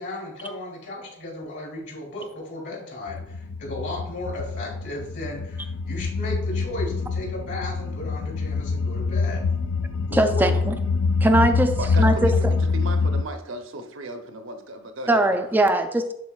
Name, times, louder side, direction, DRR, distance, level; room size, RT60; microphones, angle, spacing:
voice 1, 0.0-9.4 10.1-10.5, left 1 dB, 60° left, -3 dB, 2.7 m, -35 dB
sound 1, 3.1-13.2, left 4 dB, 90° left, 0.4 m, -25 dB
voice 2, 10.1-10.7 11.2-12.3 15.1-16.1, right 1 dB, 10° right, 6 dB, 0.4 m, -21 dB
voice 3, 11.8-15.5, right 1 dB, 65° right, 6 dB, 0.7 m, -36 dB
10.5 x 4.4 x 2.3 m, 0.75 s
head